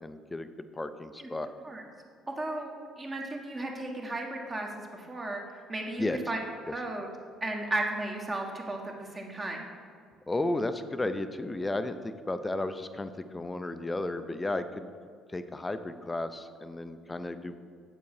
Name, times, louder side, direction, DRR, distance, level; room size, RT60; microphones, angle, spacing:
voice 1, 0.0-1.5 6.0-6.2 6.7-6.8 10.3-14.9 15.3-17.6, left 2 dB, 15° left, 10 dB, 0.5 m, -33 dB
voice 2, 2.3-6.4 6.7-7.1 7.4-9.7, right 2 dB, 25° right, 1 dB, 1.4 m, -35 dB
8.1 x 6.9 x 4.8 m, 2.1 s
figure-of-eight pair, 50°, 0 cm